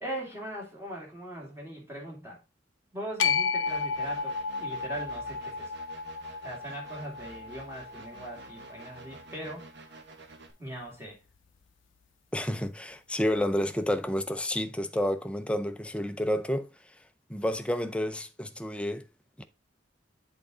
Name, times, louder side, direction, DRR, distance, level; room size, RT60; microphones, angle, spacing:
voice 1, 0.0-2.4 2.9-5.7 6.4-9.7 10.6-11.2, right 1 dB, 15° right, 2.4 m, -40 dB
sound 1, 3.2-9.4, left 5 dB, 75° left, 0.5 m, -33 dB
sound 2, 3.7-10.5, right 3 dB, 65° right, 1.1 m, -50 dB
voice 2, 12.3-16.7 17.3-19.1 19.4-19.5, equal, 5° left, 0.5 m, -30 dB
8.0 x 3.9 x 3.7 m
head